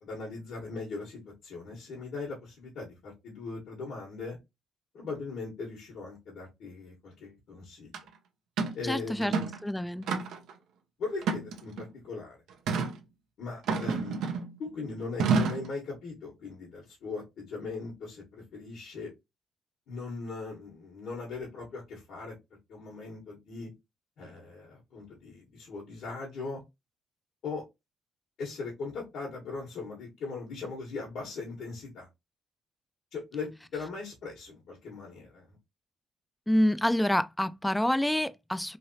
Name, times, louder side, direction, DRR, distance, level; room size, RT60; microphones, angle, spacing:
voice 1, 0.0-4.4 4.9-7.9 8.7-9.5 11.0-12.4 13.4-14.2 14.6-19.1 19.9-22.3 22.7-23.7 24.2-26.6 27.4-27.6 28.4-32.1 33.1-35.6, left 4 dB, 70° left, 1.2 m, -39 dB
sound 1, 7.9-8.0 8.6-8.8 9.2-9.6 10.1-10.5 11.2-11.9 12.7-12.9 13.7-14.5 15.2-15.7, right 5 dB, 80° right, 0.6 m, -29 dB
voice 2, 8.8-9.3 9.6-10.2 36.5-38.8, left 1 dB, 5° left, 0.3 m, -27 dB
3.3 x 2.7 x 2.7 m
cardioid pair, 90°, 0 cm